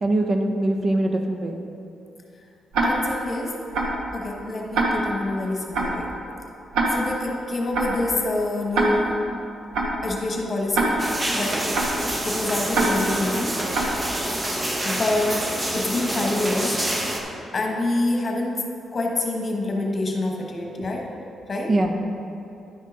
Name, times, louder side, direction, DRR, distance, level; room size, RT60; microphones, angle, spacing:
voice 1, 0.0-1.6 20.8-20.9 21.7-21.9, right 1 dB, 45° right, 4 dB, 0.7 m, -22 dB
Tick-tock, 2.7-3.2 3.7-4.1 4.7-5.2 5.7-6.1 6.7-7.2 7.7-8.1 8.7-9.2 9.7-10.1 10.7-11.2 11.7-12.1 12.7-13.2 13.7-14.1, right 2 dB, 85° right, 1.1 m, -24 dB
voice 2, 2.8-3.6 4.1-6.1 6.9-9.3 10.0-11.0 11.4-11.7 12.2-13.6 14.8-16.8 17.5-18.6 18.9-21.1 21.5-21.7, left 2 dB, 40° left, 0 dB, 1.2 m, -26 dB
sound 1, 11.0-17.2, right 1 dB, 25° right, 1.0 m, -27 dB
10.5 x 5.4 x 3.8 m, 2.6 s
cardioid pair, 95°, 0 cm